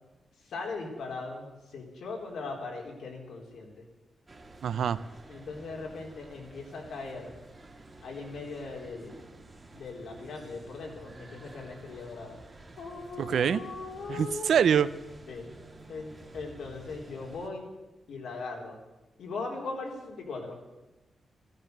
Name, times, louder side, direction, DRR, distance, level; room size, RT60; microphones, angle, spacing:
voice 1, 0.4-3.8 5.3-7.4 8.0-9.2 9.7-12.4 12.8-14.5 15.3-15.5 15.9-17.7 18.1-18.8 19.2-20.6, left 3 dB, 90° left, 0 dB, 3.8 m, -39 dB
sound 1, 4.3-17.5, right 2 dB, 20° right, 1.7 m, -51 dB
voice 2, 4.6-5.0 13.2-13.6 14.1-14.9, right 8 dB, 70° right, 15 dB, 0.6 m, -24 dB
15.0 x 13.5 x 6.7 m, 1.0 s
wide cardioid pair, 170°, 0 cm